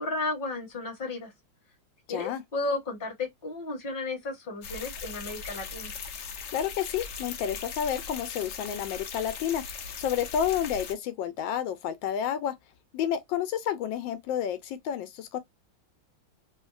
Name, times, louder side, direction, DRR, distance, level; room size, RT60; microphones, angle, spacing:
voice 1, 0.0-1.3 2.1-6.0, left 3 dB, 30° left, 1.3 m, -33 dB
voice 2, 2.1-2.4 6.5-9.6 10.0-12.5 12.9-15.4, left 9 dB, 85° left, 1.3 m, -30 dB
sound 1, 4.6-10.9, left 6 dB, 65° left, 0.7 m, -39 dB
3.1 x 2.8 x 2.4 m
omnidirectional pair, 2.0 m